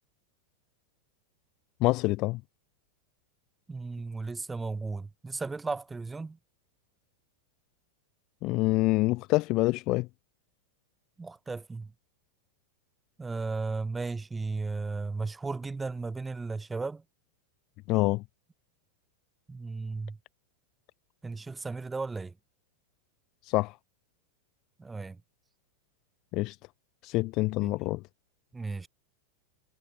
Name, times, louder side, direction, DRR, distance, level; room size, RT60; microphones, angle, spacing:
voice 1, 1.8-2.4 8.4-10.1 17.9-18.2 23.5-23.7 26.3-26.6 27.0-28.0, left 21 dB, 40° left, 0.3 m, -26 dB
voice 2, 3.7-6.4 11.2-11.9 13.2-17.0 19.5-20.2 21.2-22.3 24.8-25.2 27.6-27.7 28.5-28.9, right 3 dB, 10° right, 2.5 m, -35 dB
figure-of-eight pair, 90°, 0 cm